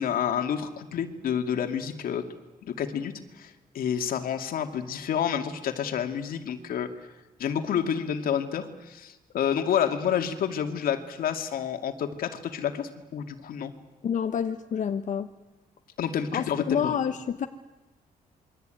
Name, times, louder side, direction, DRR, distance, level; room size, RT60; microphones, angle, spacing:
voice 1, 0.0-2.2 2.6-7.1 7.4-13.7 16.0-17.0, left 8 dB, 85° left, 7 dB, 2.5 m, -29 dB
voice 2, 14.0-15.3 16.3-17.5, left 8 dB, 60° left, 8 dB, 1.1 m, -28 dB
27.5 x 23.5 x 9.2 m, 1.1 s
cardioid pair, 135°, 15 cm